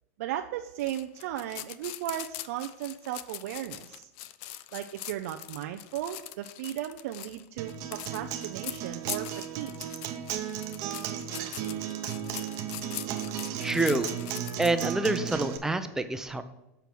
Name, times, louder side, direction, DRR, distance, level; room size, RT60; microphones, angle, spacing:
voice 1, 0.2-4.1 4.7-9.3 9.6-9.7, right 12 dB, 70° right, 5 dB, 0.4 m, -36 dB
sound 1, 0.8-14.9, left 14 dB, 60° left, 0.5 m, -42 dB
Acoustic guitar, 7.6-15.6, right 10 dB, 50° right, 0.8 m, -35 dB
voice 2, 13.6-14.1 14.6-16.4, right 2 dB, 5° right, 9 dB, 0.6 m, -27 dB
7.0 x 4.5 x 6.0 m, 0.93 s
supercardioid pair, 125°, 8 cm